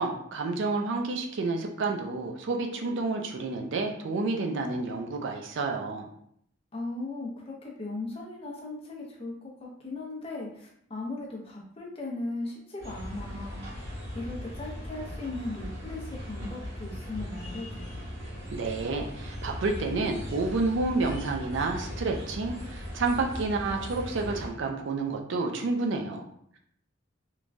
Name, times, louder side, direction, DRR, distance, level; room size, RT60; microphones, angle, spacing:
voice 1, 0.0-6.1 18.5-26.2, right 3 dB, 60° right, 2 dB, 0.4 m, -30 dB
voice 2, 6.7-13.6 14.1-18.0, left 2 dB, 30° left, -2 dB, 0.5 m, -38 dB
sound 1, 12.8-24.5, left 1 dB, 75° right, 1.4 m, -38 dB
3.1 x 2.2 x 2.5 m, 0.68 s
head